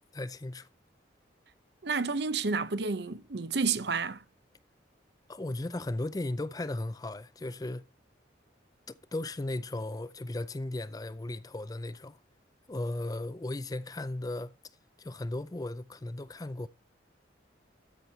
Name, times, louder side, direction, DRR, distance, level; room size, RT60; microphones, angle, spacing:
voice 1, 0.1-0.7 5.3-7.8 8.9-12.2 12.7-14.5 15.0-16.7, left 2 dB, 20° left, 0.4 m, -36 dB
voice 2, 1.8-4.2, right 4 dB, 60° right, 0.8 m, -30 dB
13.5 x 6.1 x 2.8 m
head